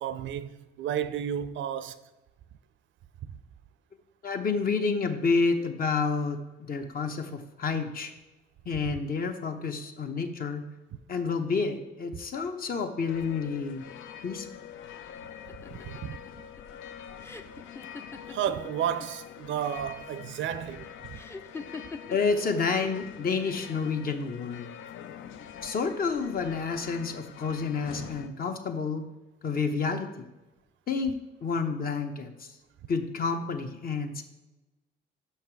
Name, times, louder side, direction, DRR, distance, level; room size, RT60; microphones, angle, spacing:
voice 1, 0.0-2.0 8.8-8.9 15.9-16.2 18.3-21.2, right 9 dB, 75° right, 0.5 m, -32 dB
voice 2, 4.2-8.1 8.7-10.6 11.1-13.8 14.2-14.5 22.1-24.7 25.6-29.0 29.4-30.3 30.9-32.5 32.9-34.2, left 4 dB, 45° left, 0.8 m, -29 dB
sound 1, 13.1-28.3, left 9 dB, 80° left, 0.5 m, -45 dB
sound 2, 15.5-19.1 19.4-20.0 21.1-22.4 23.3-23.9, left 4 dB, 10° left, 0.5 m, -43 dB
5.8 x 5.7 x 4.6 m
cardioid pair, 90°, 20 cm